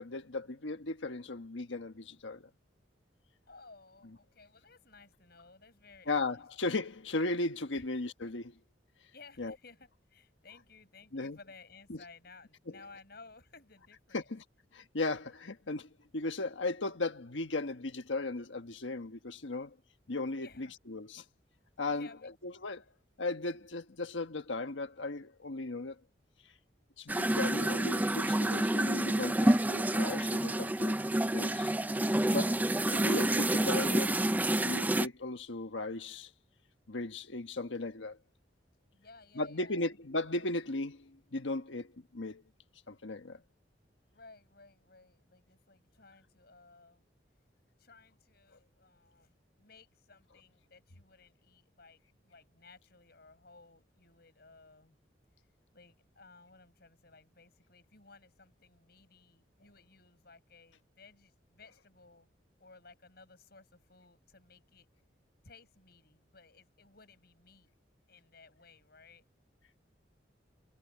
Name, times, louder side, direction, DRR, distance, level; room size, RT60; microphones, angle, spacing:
voice 1, 0.0-2.5 6.1-8.6 9.4-9.5 11.1-11.4 11.9-12.0 14.1-14.4 14.7-19.8 20.1-21.2 21.8-22.8 23.2-26.0 27.0-31.1 31.3-31.7 32.3-32.6 32.9-34.2 34.6-36.3 36.9-38.2 39.3-42.4 42.9-43.4, left 2 dB, 90° left, 1.3 m, -36 dB
voice 2, 3.5-6.4 7.7-7.9 9.1-14.3 20.4-20.7 21.8-22.3 38.9-40.0 44.1-47.1 47.8-55.0 55.7-62.3 62.6-64.9 65.4-67.7 68.1-69.2, left 4 dB, 55° left, 7.1 m, -58 dB
sound 1, 27.1-35.1, right 1 dB, 10° right, 0.4 m, -28 dB
head